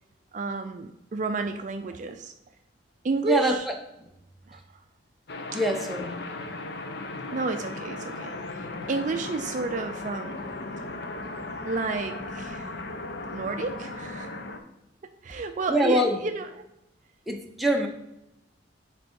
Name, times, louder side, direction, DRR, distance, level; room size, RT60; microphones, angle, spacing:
voice 1, 0.3-2.3 3.0-3.7 4.5-4.6 5.5-5.6 7.3-10.4 11.6-12.7 13.3-14.3 15.2-16.6, right 3 dB, 40° right, 7 dB, 0.4 m, -31 dB
sound 1, 5.3-14.6, left 2 dB, 60° left, 0.7 m, -36 dB
voice 2, 5.5-6.2 15.7-16.2 17.3-17.9, right 1 dB, ahead, 1 dB, 0.7 m, -24 dB
9.0 x 3.5 x 4.4 m, 0.88 s
head